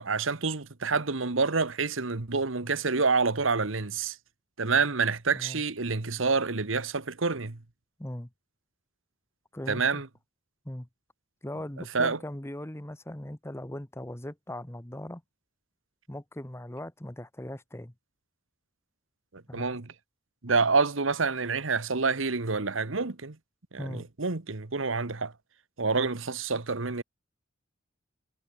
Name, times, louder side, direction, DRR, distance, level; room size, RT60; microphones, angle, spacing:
voice 1, 0.0-4.2 4.6-7.6 9.7-10.1 11.9-12.2 19.3-19.9 20.4-23.4 23.7-25.3 25.8-27.0, right 4 dB, 75° right, 1.4 m, -27 dB
voice 2, 9.5-10.0 10.6-10.9 11.4-15.2 16.1-17.9 19.5-19.8 23.8-24.1 26.0-26.1, left 1 dB, 15° left, 1.1 m, -39 dB
head